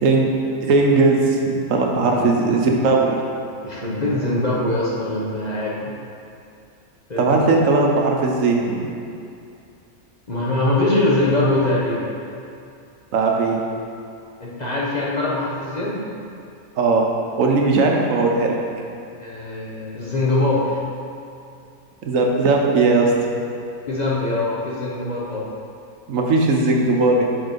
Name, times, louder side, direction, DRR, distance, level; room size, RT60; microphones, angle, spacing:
voice 1, 0.0-0.3 0.6-3.2 7.2-8.8 13.1-13.6 16.8-17.1 17.4-18.6 22.0-23.1 26.1-27.2, right 3 dB, 75° right, 0 dB, 1.1 m, -18 dB
voice 2, 2.0-2.3 3.6-5.9 7.1-7.3 10.3-12.1 14.4-16.0 19.2-20.8 23.9-25.5, left 2 dB, 35° left, -6 dB, 0.9 m, -22 dB
6.3 x 4.5 x 5.1 m, 2.5 s
omnidirectional pair, 1.4 m